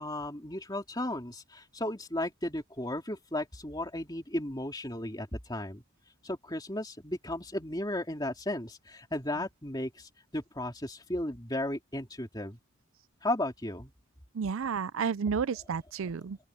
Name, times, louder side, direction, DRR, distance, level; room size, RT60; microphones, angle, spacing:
voice 1, 0.0-5.8 6.2-12.6 13.2-13.9, left 1 dB, 20° left, 3.0 m, -35 dB
voice 2, 14.4-16.4, right 6 dB, 65° right, 0.4 m, -31 dB
open air
head